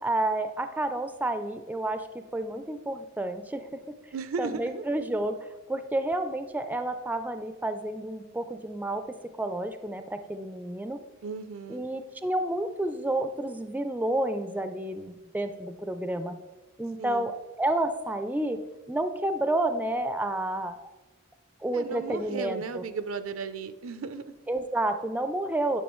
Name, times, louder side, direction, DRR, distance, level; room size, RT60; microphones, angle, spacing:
voice 1, 0.0-3.9 4.4-9.0 9.4-11.0 11.7-16.4 16.8-18.6 18.9-20.8 21.6-22.8 24.5-25.8, right 1 dB, 10° right, 8 dB, 0.4 m, -30 dB
voice 2, 4.1-4.8 11.2-11.8 17.0-17.3 21.7-24.3, right 5 dB, 85° right, 11 dB, 0.5 m, -35 dB
10.0 x 5.8 x 3.1 m, 1.1 s
head